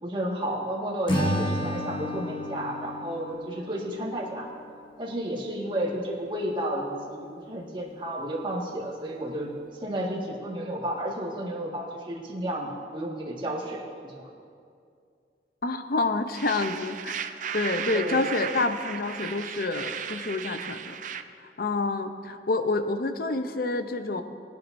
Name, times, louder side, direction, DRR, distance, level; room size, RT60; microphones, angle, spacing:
voice 1, 0.0-4.5 5.0-9.5 9.8-14.3 17.9-18.2, right 1 dB, 30° right, -3 dB, 1.8 m, -32 dB
Acoustic guitar / Strum, 1.1-4.4, equal, 30° left, 1.3 m, -30 dB
voice 2, 15.6-17.2 17.5-21.0 21.4-24.2, left 3 dB, 55° left, 8 dB, 0.6 m, -28 dB
sound 1, 16.4-21.2, right 8 dB, 45° right, 0.4 m, -35 dB
20.5 x 9.2 x 2.6 m, 2.3 s
head